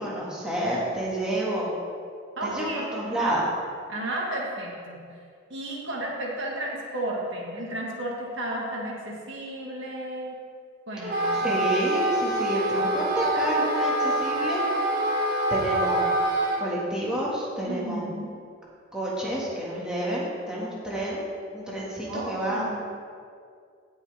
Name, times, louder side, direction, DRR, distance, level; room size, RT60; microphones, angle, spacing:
voice 1, 0.0-1.7 2.4-3.5 11.0-15.0 15.5-16.1 16.6-18.1 18.9-21.2 21.5-22.6, right 1 dB, 5° right, -7 dB, 1.8 m, -29 dB
voice 2, 2.4-2.9 3.9-5.0 5.5-10.4 10.9-11.4 17.7-18.3 22.1-22.8, right 1 dB, 70° right, -3 dB, 1.9 m, -33 dB
Wind instrument woodwind instrument, 11.0-16.7, right 1 dB, 55° right, 1.7 m, -25 dB
16.5 x 5.7 x 3.5 m, 2.2 s
head